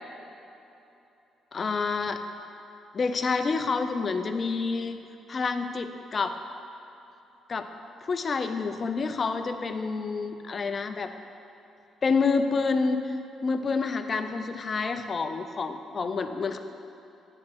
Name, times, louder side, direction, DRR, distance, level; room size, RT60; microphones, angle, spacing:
voice 1, 1.5-2.2 2.9-5.0 5.3-6.4 7.5-7.7 8.0-11.1 12.0-13.2 13.4-16.6, left 4 dB, 40° left, 8 dB, 0.5 m, -28 dB
9.8 x 4.2 x 6.1 m, 2.9 s
cardioid pair, 90°, 0 cm